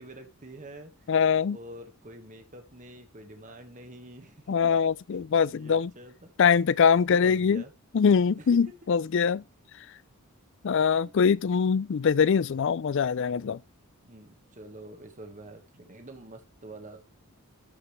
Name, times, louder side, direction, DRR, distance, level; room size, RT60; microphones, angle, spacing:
voice 1, 0.0-1.1 1.5-4.8 5.5-6.3 6.9-7.7 8.4-8.7 10.6-10.7 11.0-11.1 11.5-11.7 14.0-17.0, right 1 dB, 35° right, 1.5 m, -47 dB
voice 2, 1.1-1.6 4.5-5.9 6.4-7.6 7.9-9.4 10.6-13.6, left 6 dB, 55° left, 0.4 m, -23 dB
12.5 x 5.4 x 3.3 m
head